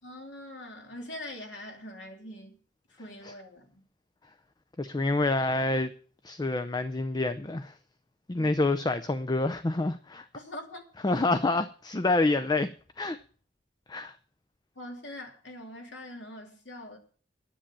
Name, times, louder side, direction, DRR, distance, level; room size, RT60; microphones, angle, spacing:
voice 1, 0.0-2.5 2.9-3.8 10.3-10.8 14.8-17.0, left 1 dB, 80° left, 2.9 m, -43 dB
voice 2, 4.8-5.9 6.2-7.7 8.3-10.3 11.0-12.7 13.0-13.2 13.9-14.1, left 2 dB, 25° left, 0.5 m, -27 dB
10.0 x 8.7 x 7.4 m
head